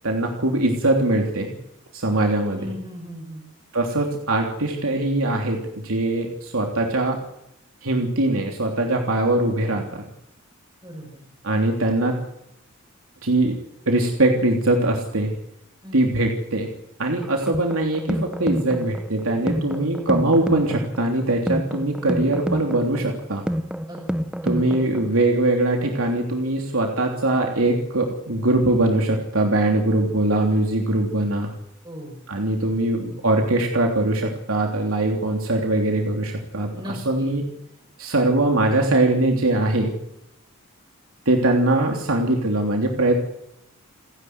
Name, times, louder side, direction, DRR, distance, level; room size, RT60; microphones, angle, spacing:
voice 1, 0.0-1.5 1.9-2.7 3.7-7.2 7.8-10.1 11.4-12.2 13.2-13.6 13.9-15.3 15.9-16.7 17.0-23.4 24.4-31.5 32.3-37.4 38.0-39.9 41.2-43.2, right 2 dB, 80° right, 2 dB, 3.2 m, -22 dB
voice 2, 2.6-3.4 10.8-11.2 15.8-16.1 23.9-24.0 31.8-32.2 36.7-37.3, equal, 20° right, -1 dB, 6.3 m, -37 dB
sound 1, 17.2-25.2, equal, 5° right, 0.9 m, -28 dB
30.0 x 11.0 x 9.5 m, 0.79 s
head